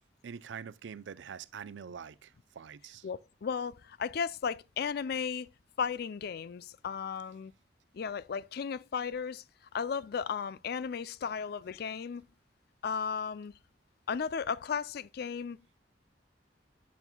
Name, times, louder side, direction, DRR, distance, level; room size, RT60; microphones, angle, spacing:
voice 1, 0.2-3.1, right 7 dB, 85° right, 0.4 m, -45 dB
voice 2, 3.0-5.5 5.8-7.5 7.9-9.4 9.7-12.3 12.8-13.5 14.1-15.6, left 6 dB, 60° left, 0.4 m, -35 dB
10.5 x 7.2 x 2.2 m
head